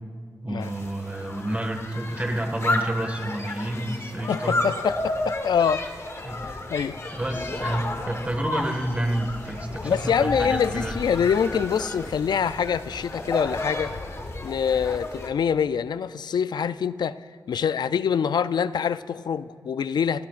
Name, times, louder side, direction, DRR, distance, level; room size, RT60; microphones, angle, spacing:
voice 1, 0.4-4.6 6.2-6.6 7.1-10.9, right 1 dB, 20° right, 3 dB, 1.7 m, -29 dB
sound 1, 0.6-15.3, left 2 dB, 40° left, 1.4 m, -32 dB
voice 2, 4.3-5.8 6.7-7.0 9.8-13.9 14.4-20.3, left 7 dB, 90° left, 14 dB, 0.4 m, -25 dB
Bird, 4.7-13.7, left 1 dB, 25° left, 2.9 m, -48 dB
28.0 x 17.5 x 2.5 m, 2.2 s
wide cardioid pair, 135°, 7 cm